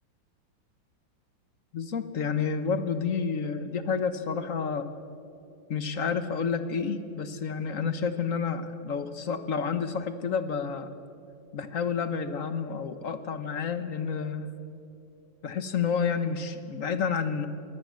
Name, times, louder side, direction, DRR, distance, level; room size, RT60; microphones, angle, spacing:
voice 1, 1.7-4.9 5.7-10.9 11.5-14.5 15.4-17.5, left 6 dB, 50° left, 11 dB, 1.3 m, -30 dB
22.5 x 17.5 x 7.6 m, 2.6 s
omnidirectional pair, 2.1 m